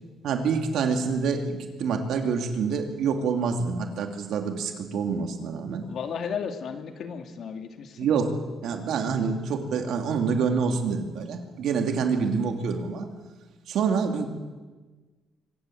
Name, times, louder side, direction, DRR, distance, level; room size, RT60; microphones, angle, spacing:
voice 1, 0.2-5.9 8.0-8.3 8.6-13.1 13.7-14.3, right 5 dB, 75° right, 5 dB, 3.0 m, -27 dB
voice 2, 5.8-8.1, left 6 dB, 65° left, 6 dB, 2.5 m, -34 dB
24.5 x 17.5 x 8.0 m, 1.3 s
cardioid pair, 90°, 0 cm